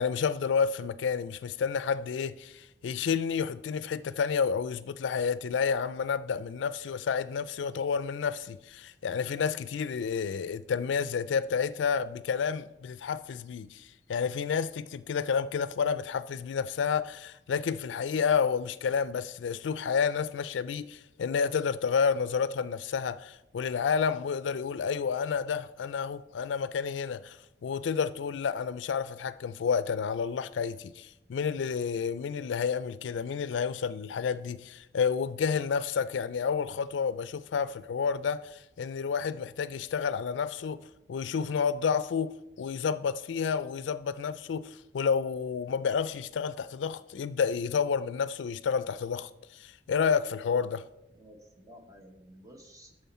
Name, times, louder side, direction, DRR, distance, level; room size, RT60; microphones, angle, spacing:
voice 1, 0.0-27.4 27.6-40.8 41.1-49.3 49.6-50.9, left 6 dB, 85° left, 0.4 m, -30 dB
voice 2, 51.1-53.1, equal, 20° right, 1.2 m, -53 dB
9.2 x 6.4 x 4.2 m
head